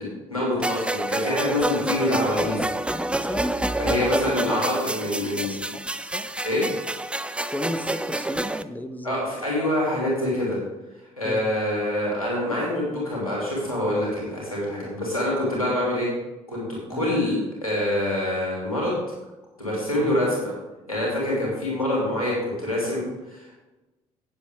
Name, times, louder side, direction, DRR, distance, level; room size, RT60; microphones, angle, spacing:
voice 1, 0.0-2.6 3.8-5.7 6.4-6.6 9.0-10.6 11.2-16.1 16.5-19.0 19.6-20.5 20.9-23.7, left 1 dB, 85° left, -4 dB, 3.0 m, -26 dB
sound 1, 0.6-8.6, right 1 dB, 5° right, 0.5 m, -28 dB
voice 2, 2.9-3.6 5.0-5.1 5.4-5.8 6.1-6.3 7.5-9.1 11.2-11.4 16.9-17.1 20.0-20.2, left 1 dB, 10° left, 9 dB, 1.1 m, -34 dB
17.5 x 7.3 x 3.6 m, 1.1 s
figure-of-eight pair, 45°, 18 cm